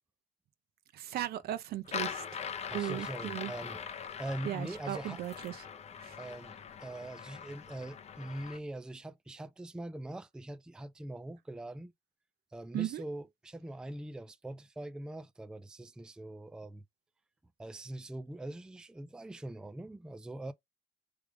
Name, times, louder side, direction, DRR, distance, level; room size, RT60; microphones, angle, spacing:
voice 1, 0.9-2.4 2.7-3.5 4.4-5.7 6.0-6.2 12.7-13.0, right 13 dB, 65° right, 0.7 m, -37 dB
sound 1, 1.9-8.6, left 7 dB, 40° left, 0.7 m, -42 dB
voice 2, 2.7-3.8 4.2-5.2 6.2-11.9 12.5-16.8 17.6-20.5, right 1 dB, 5° right, 0.4 m, -42 dB
3.3 x 3.3 x 4.8 m
cardioid pair, 110°, 17 cm